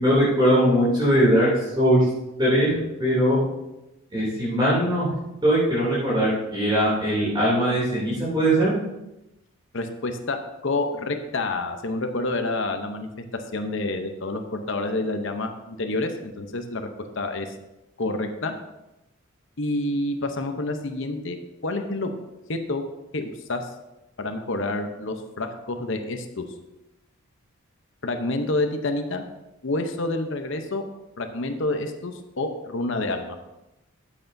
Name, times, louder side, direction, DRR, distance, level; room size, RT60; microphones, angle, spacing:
voice 1, 0.0-2.1 2.4-3.4 4.1-5.1 5.4-8.7, equal, 20° right, -8 dB, 2.8 m, -20 dB
voice 2, 9.7-13.1 13.5-16.9 17.2-17.5 18.0-18.5 19.6-21.4 21.6-22.1 22.5-22.8 23.1-23.7 24.2-26.4 28.0-29.2 29.6-30.8 31.2-33.4, left 2 dB, 55° left, 6 dB, 0.8 m, -28 dB
13.0 x 8.0 x 2.7 m, 0.96 s
head